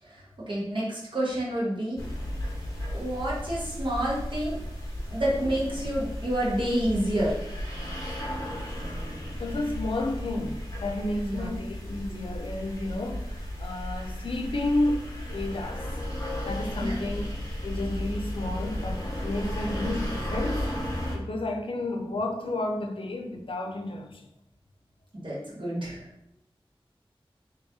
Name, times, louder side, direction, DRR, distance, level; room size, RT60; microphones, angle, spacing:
voice 1, 0.0-2.0 2.9-4.6 5.1-7.4 11.2-11.5 16.8-17.0 25.1-26.1, right 1 dB, 60° right, 1.3 m, -29 dB
sound 1, 2.0-21.2, left 1 dB, 35° left, 1.2 m, -34 dB
voice 2, 9.4-13.3 13.6-15.8 16.4-17.3 17.6-20.7 21.1-24.3, left 2 dB, 70° left, 0.5 m, -31 dB
3.1 x 2.8 x 3.6 m
wide cardioid pair, 70°, 10 cm